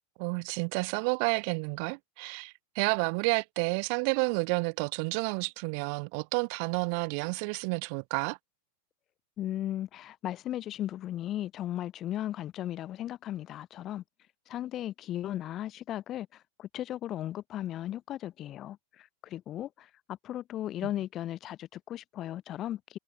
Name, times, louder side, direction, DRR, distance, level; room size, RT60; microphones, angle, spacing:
voice 1, 0.2-8.4, right 39 dB, 45° right, 2.1 m, -30 dB
voice 2, 9.4-14.0 14.5-23.0, left 12 dB, 30° left, 3.9 m, -36 dB
figure-of-eight pair, 90°, 0 cm